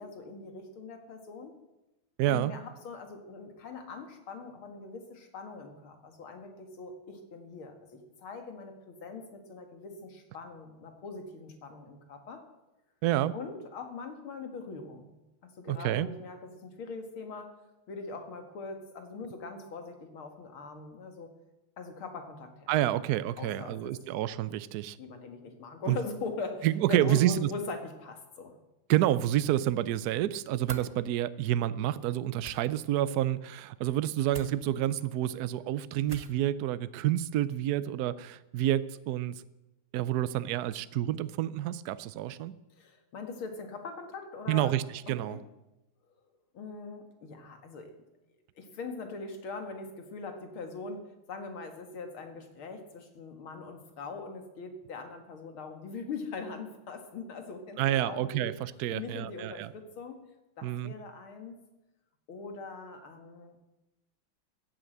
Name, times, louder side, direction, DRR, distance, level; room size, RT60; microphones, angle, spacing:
voice 1, 0.0-1.5 2.3-12.4 13.3-15.1 15.4-17.5 17.9-21.3 21.8-23.0 23.4-23.9 25.0-28.5 42.7-44.7 45.1-45.4 46.5-47.9 48.6-58.5 58.9-60.2 60.6-61.6 62.3-63.6, left 4 dB, 85° left, 5 dB, 2.7 m, -41 dB
voice 2, 2.2-2.5 13.0-13.3 15.7-16.1 22.7-25.0 25.9-26.0 26.6-27.5 28.9-39.4 39.9-42.5 44.5-44.8 45.1-45.4 57.8-59.7 60.6-60.9, right 13 dB, 70° right, 15 dB, 0.9 m, -29 dB
sound 1, 30.6-30.9 32.4-32.6 34.3-34.5 36.1-36.4, right 4 dB, 50° right, 0.4 m, -42 dB
15.5 x 8.9 x 7.9 m, 0.99 s
omnidirectional pair, 2.2 m